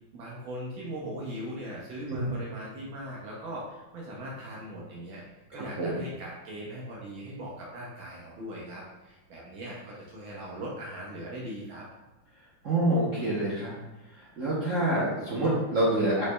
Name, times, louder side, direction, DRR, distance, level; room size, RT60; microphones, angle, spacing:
voice 1, 0.1-5.2 5.5-11.9, right 1 dB, 75° right, -4 dB, 1.5 m, -40 dB
voice 2, 12.6-13.7 14.2-16.3, right 1 dB, 55° right, -8 dB, 0.8 m, -26 dB
6.4 x 3.1 x 2.2 m, 1.1 s
omnidirectional pair, 2.3 m